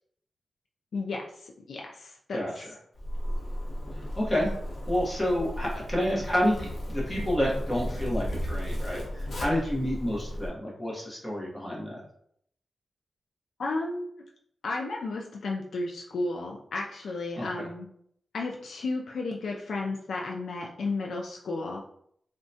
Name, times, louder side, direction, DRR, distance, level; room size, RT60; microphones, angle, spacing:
voice 1, 0.9-2.7 13.6-14.1 14.6-17.9 18.3-21.8, left 3 dB, 90° left, -1 dB, 0.3 m, -33 dB
voice 2, 2.3-2.6 4.2-4.5 4.9-12.0 17.4-17.7, equal, 15° left, -4 dB, 0.8 m, -29 dB
Zipper (clothing), 2.9-10.5, equal, 55° left, 0.8 m, -34 dB
3.5 x 2.1 x 2.6 m, 0.68 s
wide cardioid pair, 170°, 0 cm